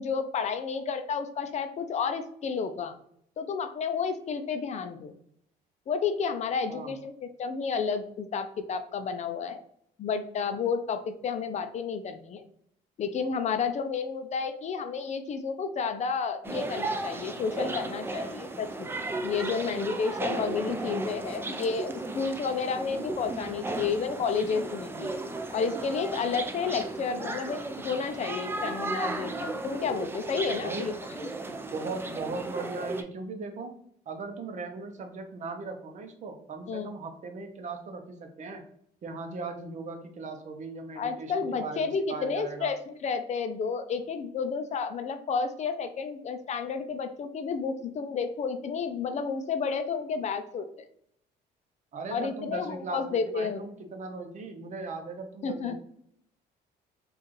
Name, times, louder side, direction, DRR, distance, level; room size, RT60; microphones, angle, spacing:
voice 1, 0.0-2.9 3.4-5.1 5.9-9.6 10.0-12.4 13.0-18.9 19.2-21.9 22.1-25.1 25.5-30.9 36.7-36.9 41.0-50.8 52.1-53.6 55.4-55.8, left 5 dB, 45° left, 8 dB, 0.4 m, -31 dB
sound 1, 16.4-33.0, right 2 dB, 15° right, 0.4 m, -35 dB
voice 2, 30.6-30.9 31.7-38.6 39.0-42.7 51.9-55.8, right 3 dB, 45° right, 6 dB, 0.7 m, -38 dB
4.5 x 2.4 x 3.1 m, 0.68 s
cardioid pair, 110°, 17 cm